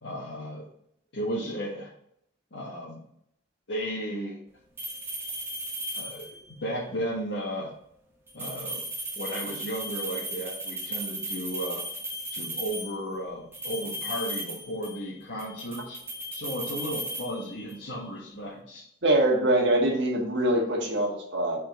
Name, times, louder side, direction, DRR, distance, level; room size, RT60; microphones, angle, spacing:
voice 1, 0.0-0.6 1.1-1.9 2.5-3.0 3.7-4.4 5.9-7.7 8.3-8.9 9.2-11.8 12.3-16.0 16.3-18.8, equal, 65° left, -7 dB, 1.5 m, -34 dB
sound 1, 4.8-6.5 8.3-13.0 13.5-15.1 15.4-17.9, right 1 dB, 10° right, 0.9 m, -36 dB
voice 2, 19.0-21.6, right 1 dB, 60° right, 0 dB, 1.6 m, -23 dB
5.3 x 4.4 x 4.4 m, 0.73 s
head